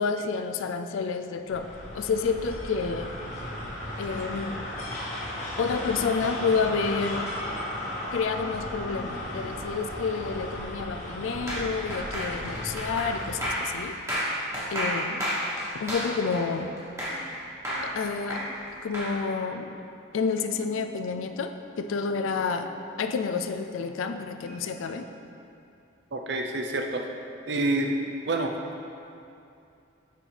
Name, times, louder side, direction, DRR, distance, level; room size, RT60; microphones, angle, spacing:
voice 1, 0.0-1.7 1.9-3.1 4.0-4.6 5.6-7.3 8.1-14.0 14.7-15.3 15.8-16.8 17.8-18.5 18.8-19.7 20.1-22.7 23.0-25.1, left 5 dB, 85° left, 8 dB, 0.4 m, -29 dB
sound 1, 1.5-13.6, left 1 dB, 35° left, 1.2 m, -35 dB
sound 2, 11.5-17.3 17.6-19.1, equal, 15° right, 1.2 m, -31 dB
sound 3, 17.1-17.2 17.7-17.8 18.4-18.5 20.3-21.4 21.7-21.8 22.1-22.2 22.6-22.7 23.3-23.4 23.9-24.0 24.4-24.9, equal, 10° left, 1.3 m, -51 dB
voice 2, 26.1-27.0 27.5-28.0 28.3-28.6, right 2 dB, 60° right, 3 dB, 0.5 m, -27 dB
7.3 x 5.6 x 3.3 m, 2.7 s
head